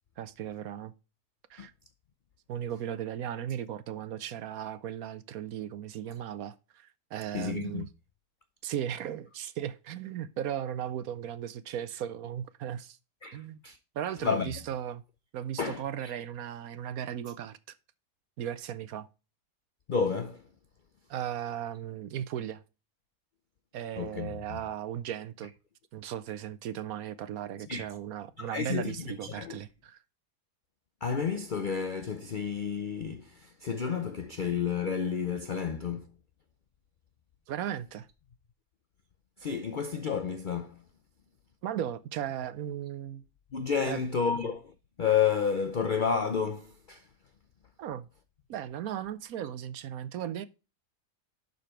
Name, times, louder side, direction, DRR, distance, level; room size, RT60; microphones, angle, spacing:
voice 1, 0.2-0.9 1.5-1.7 2.5-7.9 8.6-13.0 13.3-13.6 13.9-15.0 15.3-17.8 18.4-19.1 21.1-22.6 23.7-25.5 25.9-30.0 37.5-38.1 41.6-43.2 43.8-44.0 47.8-48.1 48.5-50.5, right 10 dB, 70° right, 1.0 m, -36 dB
voice 2, 7.3-7.9 13.2-13.8 14.2-14.5 15.6-16.1 19.9-20.4 24.0-24.6 27.7-27.9 28.4-29.6 31.0-36.0 39.4-40.8 43.5-44.7 45.0-47.1, left 6 dB, 85° left, 0.4 m, -31 dB
11.5 x 4.0 x 4.4 m
omnidirectional pair, 1.7 m